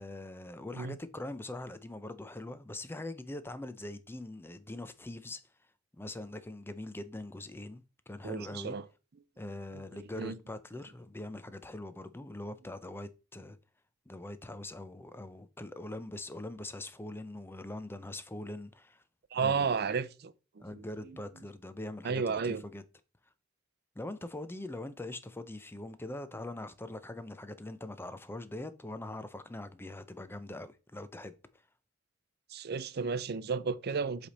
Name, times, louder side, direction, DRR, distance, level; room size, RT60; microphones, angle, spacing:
voice 1, 0.0-5.4 5.9-8.8 9.4-13.6 14.1-19.0 19.4-19.7 20.6-22.8 24.0-31.4, left 1 dB, 10° left, 0.5 m, -42 dB
voice 2, 8.2-8.8 9.7-10.4 19.3-20.8 22.0-22.6 32.5-34.3, right 5 dB, 55° right, 0.5 m, -33 dB
7.6 x 3.4 x 4.1 m
head